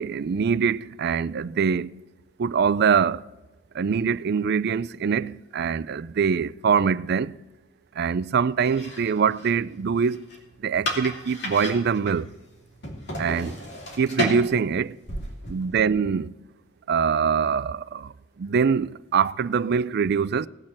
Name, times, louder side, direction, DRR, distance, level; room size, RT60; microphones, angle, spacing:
voice 1, 0.0-2.0 2.4-3.2 3.7-7.4 8.0-10.2 10.6-12.3 13.2-13.6 14.0-15.0 15.5-16.3 16.9-20.5, right 6 dB, 55° right, 0.4 m, -24 dB
sound 1, 8.6-16.0, left 1 dB, 60° left, 2.9 m, -35 dB
18.0 x 6.6 x 7.3 m
head